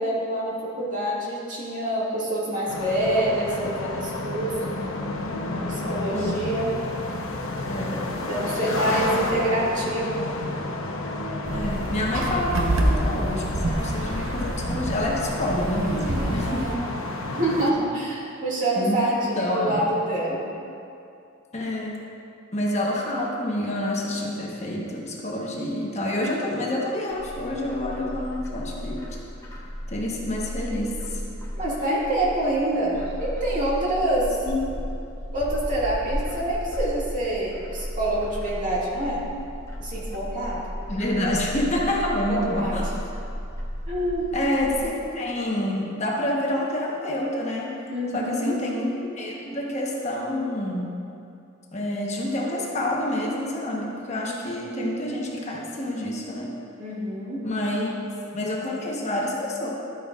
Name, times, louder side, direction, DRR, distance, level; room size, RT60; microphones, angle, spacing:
voice 1, 0.0-4.7 5.7-6.8 7.9-10.3 16.4-17.0 17.4-20.4 31.5-34.4 35.3-39.2 39.8-40.6 42.3-42.8 43.9-44.3 47.9-48.6 56.8-57.4, right 1 dB, 40° right, -6 dB, 2.1 m, -26 dB
sound 1, 2.7-17.7, left 2 dB, 75° left, 0.8 m, -31 dB
voice 2, 6.1-6.5 7.7-8.0 11.5-16.7 18.7-19.0 19.3-19.8 21.5-22.0 22.5-29.1 29.9-31.2 34.4-34.8 40.9-42.8 44.3-47.7 48.1-51.0 51.7-56.5 57.4-57.9 58.3-59.7, left 1 dB, 35° left, -3 dB, 1.1 m, -28 dB
sound 2, 11.5-16.8, right 1 dB, 75° right, 0.9 m, -27 dB
Bird, 27.1-44.8, equal, 15° left, 1.2 m, -34 dB
12.0 x 9.0 x 2.4 m, 2.6 s
head